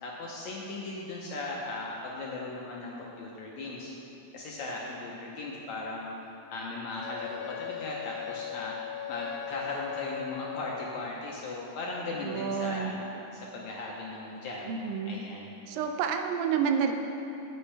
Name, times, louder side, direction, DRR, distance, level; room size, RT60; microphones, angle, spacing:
voice 1, 0.0-3.9 4.3-6.1 6.5-15.5, left 2 dB, 70° left, -3 dB, 1.8 m, -38 dB
Wind instrument woodwind instrument, 7.0-11.1, left 13 dB, 85° left, 2.4 m, -39 dB
voice 2, 12.2-12.9 14.7-15.2 15.7-16.9, right 7 dB, 80° right, 5 dB, 2.3 m, -29 dB
15.5 x 8.2 x 3.4 m, 2.9 s
omnidirectional pair, 4.1 m